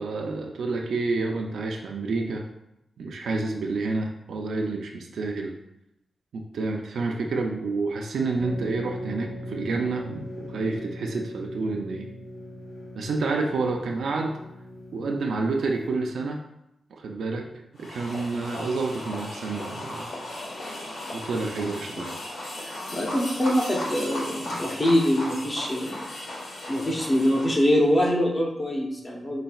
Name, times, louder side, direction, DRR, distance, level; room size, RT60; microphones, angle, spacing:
voice 1, 0.0-2.4 3.0-5.6 6.3-12.1 12.9-14.4 14.9-16.4 17.0-17.5 17.8-20.1 21.1-22.1, right 3 dB, 90° right, 1 dB, 0.4 m, -29 dB
sound 1, 8.4-15.9, left 1 dB, 50° left, 1.5 m, -39 dB
sound 2, 17.8-27.9, left 1 dB, 75° left, 1.2 m, -36 dB
voice 2, 22.9-26.0 26.7-29.4, equal, 25° left, -2 dB, 0.7 m, -24 dB
5.1 x 4.0 x 2.3 m, 0.84 s
wide cardioid pair, 175°, 0 cm